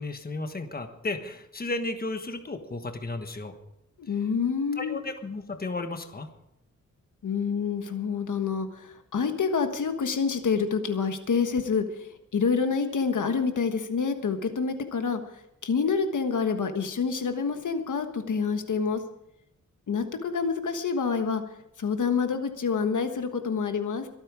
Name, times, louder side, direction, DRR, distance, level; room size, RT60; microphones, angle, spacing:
voice 1, 0.0-3.5 4.8-6.3, left 2 dB, 30° left, 7 dB, 1.4 m, -34 dB
voice 2, 4.1-5.0 7.2-15.2 15.6-19.0 19.9-21.4 21.8-24.1, left 5 dB, 75° left, 7 dB, 1.4 m, -27 dB
23.5 x 8.9 x 4.9 m, 0.81 s
wide cardioid pair, 120°, 31 cm